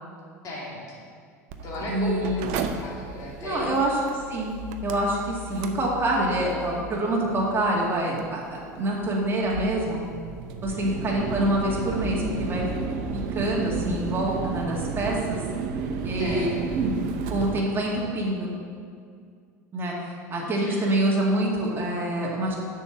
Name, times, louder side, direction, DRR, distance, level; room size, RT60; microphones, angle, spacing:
voice 1, 0.4-1.1 1.6-3.8 10.7-11.0 16.2-16.9 20.5-20.9, equal, 40° left, -4 dB, 2.4 m, -35 dB
Mechanical fan, 1.5-17.6, right 4 dB, 60° right, 0.7 m, -33 dB
voice 2, 1.9-2.5 3.4-4.0 4.3-4.5 4.8-10.0 10.6-12.7 13.3-15.4 16.0-17.0 17.3-18.6 19.7-22.6, right 1 dB, 25° right, -4 dB, 2.3 m, -26 dB
6.7 x 5.7 x 7.3 m, 2.2 s
hypercardioid pair, 75°, 9 cm